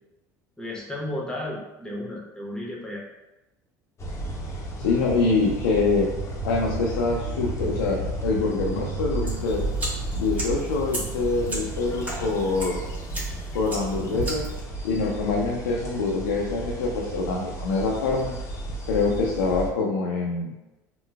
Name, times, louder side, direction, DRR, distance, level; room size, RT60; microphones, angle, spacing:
voice 1, 0.6-3.0, left 1 dB, 10° left, -3 dB, 0.9 m, -33 dB
sound 1, 4.0-19.7, right 1 dB, 30° left, 0.6 m, -33 dB
voice 2, 4.8-6.1 6.4-9.6 10.1-12.8 13.5-14.5 14.8-18.4 18.9-20.5, left 3 dB, 85° left, -2 dB, 0.4 m, -25 dB
sound 2, 9.3-14.6, right 1 dB, 20° right, 1.1 m, -36 dB
3.9 x 2.1 x 2.2 m, 1.0 s
hypercardioid pair, 75°, 9 cm